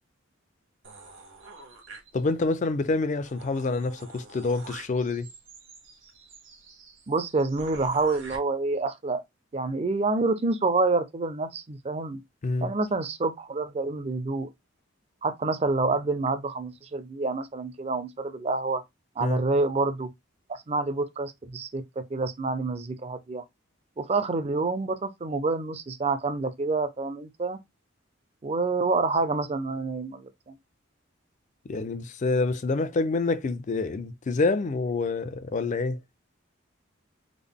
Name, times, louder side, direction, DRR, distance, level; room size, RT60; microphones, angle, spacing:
sound 1, 0.8-2.5 2.9-3.0 3.2-8.4, right 3 dB, 65° right, 1.2 m, -48 dB
voice 1, 2.1-5.3 12.4-12.7 19.2-19.4 31.7-36.0, left 3 dB, 35° left, 0.4 m, -27 dB
voice 2, 7.1-9.2 9.5-12.2 12.6-14.5 15.2-18.8 19.2-20.1 20.5-23.4 24.0-27.6 28.4-30.6, right 3 dB, 30° right, 0.5 m, -27 dB
3.7 x 2.0 x 3.5 m
head